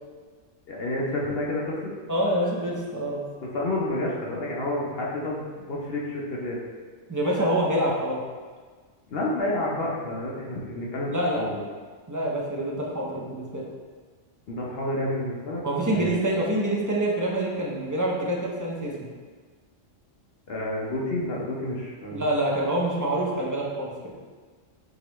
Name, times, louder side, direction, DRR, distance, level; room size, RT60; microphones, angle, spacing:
voice 1, 0.7-1.9 3.5-6.6 9.1-11.6 14.5-15.6 15.9-16.1 20.5-22.3, left 1 dB, 55° left, -4 dB, 0.9 m, -29 dB
voice 2, 2.1-3.2 7.1-8.2 11.1-11.4 12.1-13.6 15.6-19.0 22.1-23.9, right 1 dB, 25° right, -4 dB, 0.4 m, -26 dB
5.0 x 3.2 x 3.0 m, 1.5 s
omnidirectional pair, 1.3 m